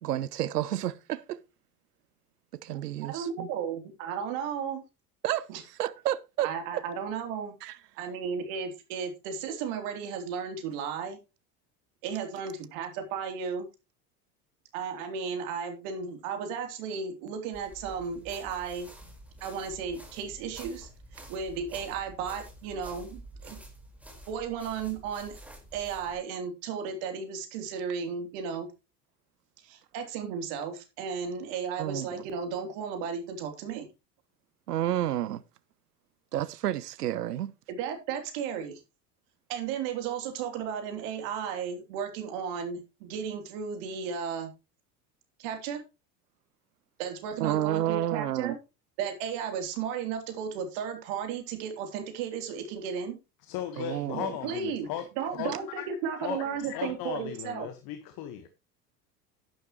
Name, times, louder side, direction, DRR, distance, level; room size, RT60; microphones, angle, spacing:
voice 1, 0.0-1.4 2.5-3.5 5.2-6.5 7.6-7.8 31.8-32.3 34.7-35.4 36.3-37.5 47.4-48.5 53.8-54.3, right 12 dB, 75° right, 0.7 m, -30 dB
voice 2, 3.0-4.8 5.5-5.6 6.4-7.5 8.0-11.2 12.0-13.7 14.7-18.9 19.4-20.9 21.3-23.6 24.3-25.4 25.7-28.7 29.6-33.9 37.7-38.8 39.5-44.5 45.4-45.8 47.0-48.5 49.0-53.2 54.4-54.9 55.2-57.7, right 6 dB, 55° right, 3.4 m, -34 dB
sound 1, 17.5-26.2, right 1 dB, 5° right, 4.7 m, -48 dB
voice 3, 53.4-55.9 56.2-58.5, left 10 dB, 50° left, 1.6 m, -37 dB
12.0 x 10.5 x 3.1 m
figure-of-eight pair, 70°, 47 cm